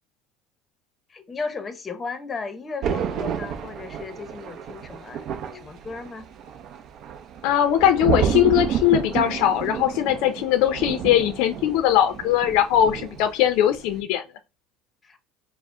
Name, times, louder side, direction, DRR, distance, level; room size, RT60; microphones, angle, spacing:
voice 1, 1.1-5.3 5.5-6.3 15.0-15.2, left 4 dB, 20° left, 0.7 m, -35 dB
Thunder, 2.8-13.4 13.7-14.0, right 8 dB, 55° right, 0.6 m, -30 dB
voice 2, 7.4-14.2, left 11 dB, 70° left, 0.4 m, -20 dB
4.8 x 2.0 x 3.6 m
supercardioid pair, 115°, 0 cm